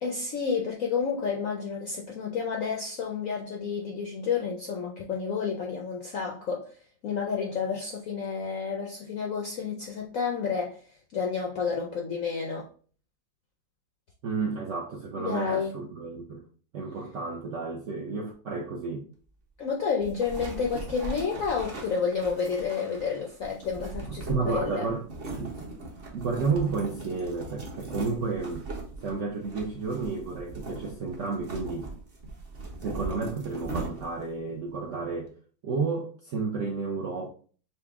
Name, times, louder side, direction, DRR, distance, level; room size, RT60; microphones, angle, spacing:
voice 1, 0.0-6.7 7.0-10.8 11.1-12.7 15.2-15.7 19.6-24.9, left 6 dB, 70° left, 0 dB, 0.7 m, -30 dB
voice 2, 14.2-16.4 16.7-19.1 24.3-25.0 25.4-25.5 26.1-28.7 29.0-31.9 32.8-35.3 35.6-37.3, right 4 dB, 70° right, -1 dB, 0.7 m, -31 dB
sound 1, 20.0-34.3, right 2 dB, 40° right, 0.9 m, -39 dB
5.7 x 2.1 x 3.5 m, 0.43 s
omnidirectional pair, 2.1 m